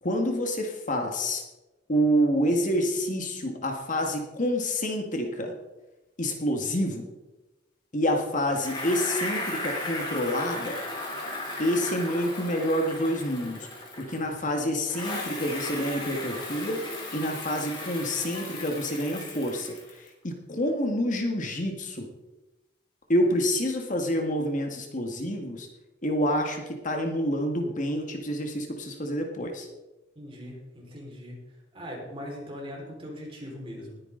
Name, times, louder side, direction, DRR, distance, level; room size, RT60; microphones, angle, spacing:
voice 1, 0.0-1.4 1.9-5.6 6.2-7.1 7.9-10.8 11.6-16.8 17.1-22.1 23.1-25.7 26.0-29.7, equal, 45° left, 3 dB, 1.8 m, -28 dB
Bicycle, 8.6-14.4 14.8-20.1, left 2 dB, 25° left, 4.0 m, -36 dB
voice 2, 30.1-31.4 31.7-34.0, equal, 30° right, -3 dB, 4.7 m, -40 dB
20.5 x 9.8 x 3.9 m, 1.1 s
head